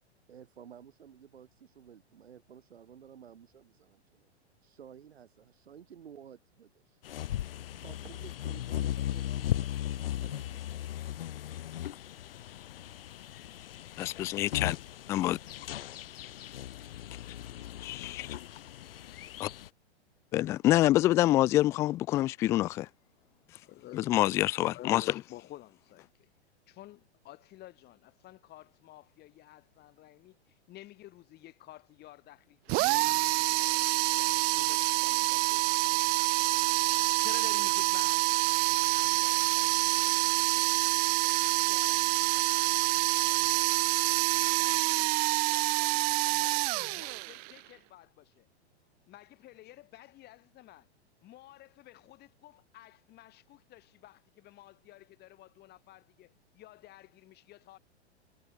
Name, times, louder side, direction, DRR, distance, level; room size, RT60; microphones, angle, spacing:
voice 1, 0.3-4.3 4.6-7.0 7.8-10.9 11.9-12.1, right 8 dB, 65° right, 4.9 m, -54 dB
sound 1, 7.0-19.7, left 12 dB, 55° left, 4.8 m, -37 dB
voice 2, 14.0-14.8 15.1-15.4 17.8-18.3 19.4-19.5 20.3-22.9 24.0-25.0, left 15 dB, 10° left, 0.3 m, -26 dB
voice 3, 23.6-24.1 24.7-26.3 26.7-36.3 37.1-38.5 38.9-40.2 41.5-43.6 44.1-48.5 49.1-50.9 51.2-57.8, left 15 dB, 30° left, 4.8 m, -53 dB
sound 2, 32.7-47.6, right 33 dB, 25° right, 0.6 m, -27 dB
figure-of-eight pair, 105°, 34 cm